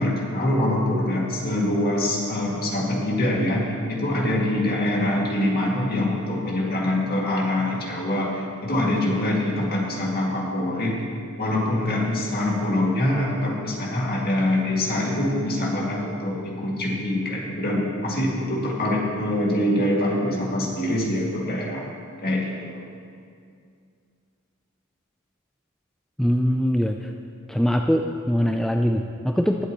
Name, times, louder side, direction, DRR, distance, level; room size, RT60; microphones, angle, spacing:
voice 1, 0.0-11.0 11.4-21.8 22.2-22.8, left 1 dB, 45° left, -3 dB, 2.1 m, -24 dB
voice 2, 26.2-27.0 27.5-29.6, equal, ahead, 3 dB, 0.3 m, -22 dB
20.5 x 8.0 x 3.0 m, 2.3 s
head